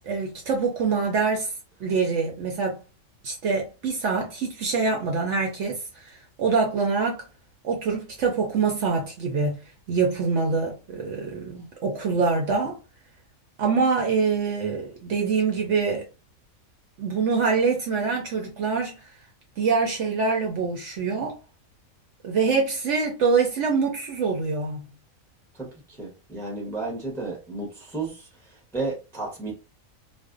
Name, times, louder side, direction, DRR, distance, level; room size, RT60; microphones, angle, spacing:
voice 1, 0.1-1.5 1.8-2.8 3.2-7.2 7.6-9.6 9.9-12.8 13.6-16.1 17.0-18.9 19.6-21.4 22.2-24.8, right 4 dB, 65° right, 0.8 m, -25 dB
voice 2, 25.5-29.5, right 3 dB, 5° left, 0.6 m, -33 dB
2.5 x 2.1 x 2.4 m
omnidirectional pair, 1.5 m